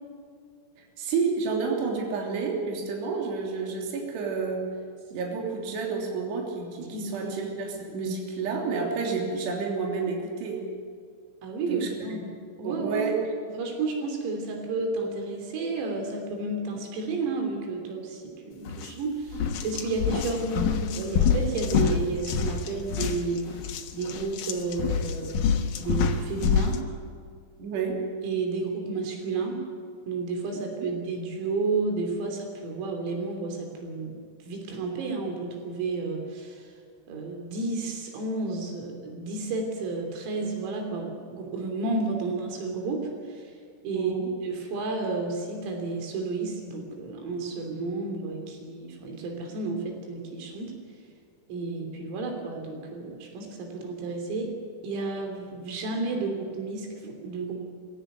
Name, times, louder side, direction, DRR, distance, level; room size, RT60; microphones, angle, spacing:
voice 1, 1.0-4.7 5.1-10.7 11.7-11.9 12.6-13.2 27.6-28.0 30.8-30.9 43.9-44.3, right 5 dB, 55° right, 0 dB, 5.0 m, -30 dB
voice 2, 6.9-7.3 7.9-8.0 11.4-13.1 13.5-23.6 23.9-25.3 25.8-26.8 28.2-29.6 30.1-34.1 34.4-36.7 37.1-43.6 43.8-44.1 44.4-50.7 51.5-54.5 54.8-57.5, right 3 dB, 85° right, 3 dB, 5.9 m, -31 dB
sound 1, 18.7-18.9 19.3-26.8, left 7 dB, 90° left, 1.8 m, -27 dB
24.5 x 16.5 x 9.4 m, 2.1 s
omnidirectional pair, 5.9 m